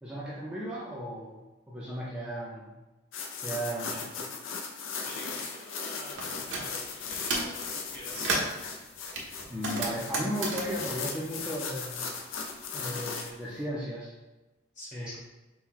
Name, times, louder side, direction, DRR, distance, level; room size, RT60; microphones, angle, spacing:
voice 1, 0.0-2.8 3.4-4.1 9.5-12.0 12.7-14.1 14.9-15.1, equal, 5° right, -7 dB, 0.5 m, -35 dB
sound 1, 3.1-13.3, left 5 dB, 80° left, 0.5 m, -38 dB
voice 2, 5.0-8.3 14.7-15.2, left 1 dB, 35° left, -5 dB, 1.2 m, -47 dB
sound 2, 6.2-6.7 7.1-7.6 7.9-8.6 9.1-12.1 12.3-13.5, right 2 dB, 65° right, 0.8 m, -34 dB
4.3 x 2.2 x 3.7 m, 1.1 s
head